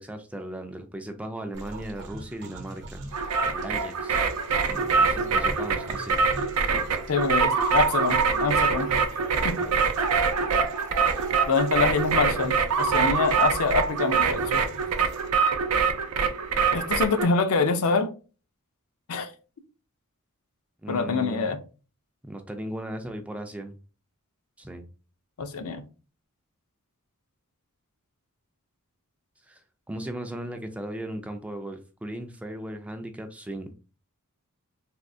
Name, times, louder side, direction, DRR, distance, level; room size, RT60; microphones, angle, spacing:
voice 1, 0.0-4.2 4.7-6.2 20.8-21.5 22.2-23.8 24.6-24.9 29.5-29.6 29.9-33.7, right 1 dB, 5° right, 0.3 m, -37 dB
sound 1, 1.5-15.3, right 2 dB, 55° right, 0.8 m, -42 dB
sound 2, 3.1-17.3, right 5 dB, 90° right, 0.5 m, -24 dB
voice 2, 7.1-8.9 9.4-9.6 11.5-14.6 16.7-18.1 19.1-19.3 20.9-21.6 25.4-25.8, left 4 dB, 70° left, 0.5 m, -25 dB
3.5 x 2.4 x 2.6 m
head